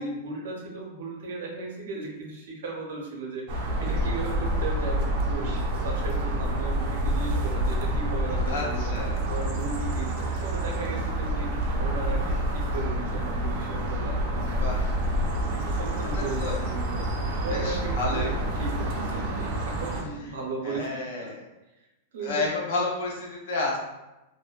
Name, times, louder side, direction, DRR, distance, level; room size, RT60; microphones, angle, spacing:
voice 1, 0.0-9.0 9.3-14.6 15.5-17.1 17.4-21.3 22.1-22.5, right 3 dB, 75° right, 0 dB, 0.7 m, -36 dB
sound 1, 3.5-20.0, right 1 dB, 40° right, 0.4 m, -28 dB
voice 2, 8.5-9.2 14.6-14.9 16.0-16.6 17.5-18.4 20.6-21.4 22.2-23.8, left 3 dB, 55° left, -2 dB, 0.6 m, -31 dB
2.6 x 2.1 x 2.3 m, 1.0 s
supercardioid pair, 175°, 0 cm